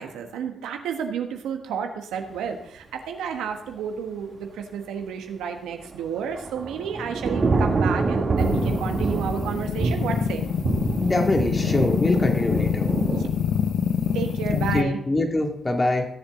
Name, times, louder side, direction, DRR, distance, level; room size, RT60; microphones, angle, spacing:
voice 1, 0.0-10.4 13.1-13.3 14.1-15.0, right 7 dB, 85° right, 5 dB, 1.3 m, -31 dB
Thunder / Rain, 5.9-13.3, right 3 dB, 50° right, 1.9 m, -26 dB
sound 1, 8.4-14.8, left 7 dB, 70° left, 0.6 m, -26 dB
voice 2, 11.0-12.9 14.5-16.1, left 2 dB, 30° left, 3 dB, 2.2 m, -24 dB
17.0 x 7.3 x 3.8 m, 0.76 s
supercardioid pair, 50°, 0 cm